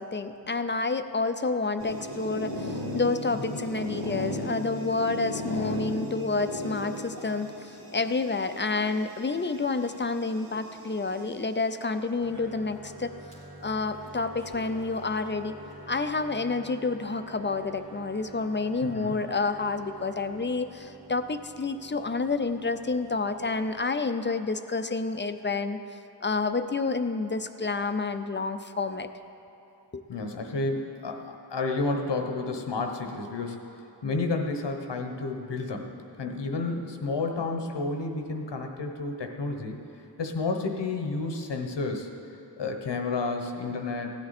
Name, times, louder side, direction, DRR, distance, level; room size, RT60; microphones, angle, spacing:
voice 1, 0.0-13.1 13.6-15.5 15.9-25.8 26.2-29.1 29.9-30.0, left 3 dB, 30° left, 9 dB, 0.5 m, -29 dB
sound 1, 1.8-11.2 12.0-12.6 12.9-13.0 13.3-13.4 14.3-15.4, equal, 90° right, 2.9 m, -37 dB
sound 2, 12.2-23.8, right 2 dB, 35° right, 2.2 m, -48 dB
voice 2, 18.8-19.2 30.1-33.6 34.0-35.9 36.2-39.8 40.2-42.1 42.6-44.1, left 3 dB, 85° left, 4 dB, 1.1 m, -31 dB
16.0 x 9.5 x 4.2 m, 2.8 s
wide cardioid pair, 65°, 41 cm